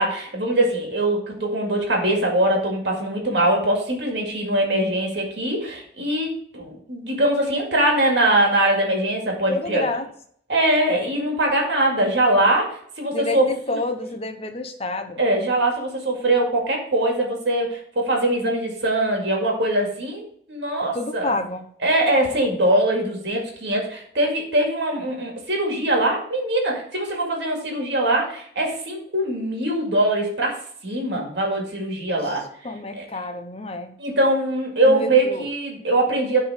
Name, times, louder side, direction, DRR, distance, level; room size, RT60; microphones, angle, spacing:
voice 1, 0.0-9.9 10.5-13.8 15.2-21.3 21.8-32.4 32.9-33.0 34.0-36.4, right 1 dB, 65° right, 0 dB, 2.1 m, -22 dB
voice 2, 9.5-10.1 13.1-15.2 20.9-21.6 32.1-32.4 32.6-33.9 34.8-35.5, left 2 dB, 30° left, 7 dB, 0.7 m, -29 dB
10.0 x 3.5 x 4.8 m, 0.62 s
head